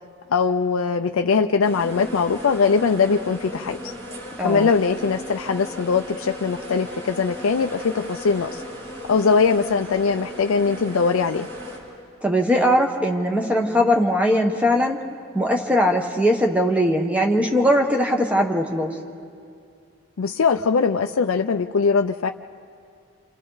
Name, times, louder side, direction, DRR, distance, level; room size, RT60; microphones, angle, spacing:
voice 1, 0.3-3.9 4.4-8.6 9.1-11.5 20.2-22.3, left 5 dB, 75° left, 5 dB, 0.5 m, -21 dB
sound 1, 1.6-11.8, equal, 75° right, 5.6 m, -36 dB
voice 2, 12.2-15.0 15.3-19.0, equal, 5° right, 2 dB, 1.2 m, -20 dB
28.5 x 28.0 x 4.0 m, 2.4 s
head